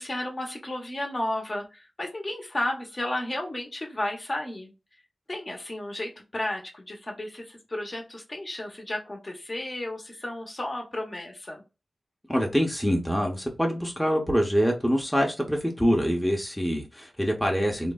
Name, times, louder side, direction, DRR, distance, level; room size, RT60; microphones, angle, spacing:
voice 1, 0.0-4.7 5.3-11.6, left 1 dB, 40° left, 2 dB, 0.8 m, -33 dB
voice 2, 12.3-17.9, equal, 5° left, 0 dB, 0.6 m, -25 dB
3.1 x 2.1 x 2.2 m, 0.28 s
cardioid pair, 60°, 0 cm